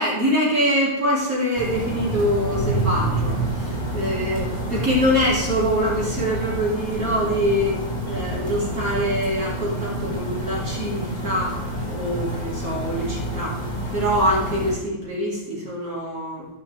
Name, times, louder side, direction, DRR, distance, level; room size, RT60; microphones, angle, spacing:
voice 1, 0.0-7.8 8.0-11.5 11.9-13.6 13.9-16.5, equal, 45° right, -5 dB, 2.7 m, -24 dB
sound 1, 1.5-14.7, right 1 dB, 50° left, 2.5 m, -28 dB
14.5 x 5.6 x 3.5 m, 0.94 s
omnidirectional pair, 2.1 m